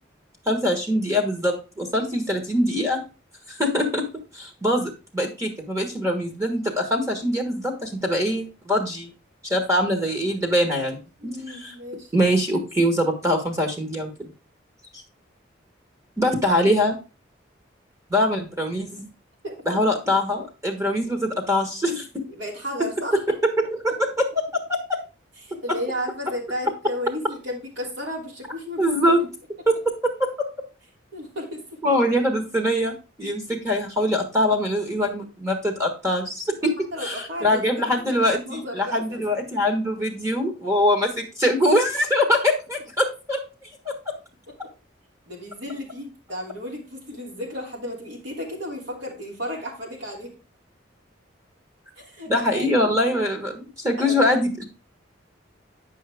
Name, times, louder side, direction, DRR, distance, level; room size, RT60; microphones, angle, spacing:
voice 1, 0.5-3.0 3.5-4.0 4.3-9.1 9.4-11.0 11.2-11.7 12.1-14.3 14.9-15.0 16.2-17.0 18.1-19.1 19.7-22.2 23.3-25.0 28.8-29.3 29.7-30.3 31.8-43.4 43.8-44.1 52.3-54.6, left 1 dB, 15° right, 3 dB, 1.3 m, -23 dB
voice 2, 11.2-12.1 19.4-19.6 22.4-23.2 25.4-29.1 31.1-31.8 36.9-37.6 37.9-39.2 45.3-50.3 52.0-52.7 54.0-54.4, left 1 dB, 70° right, -1 dB, 2.9 m, -33 dB
9.0 x 5.5 x 3.5 m, 0.31 s
head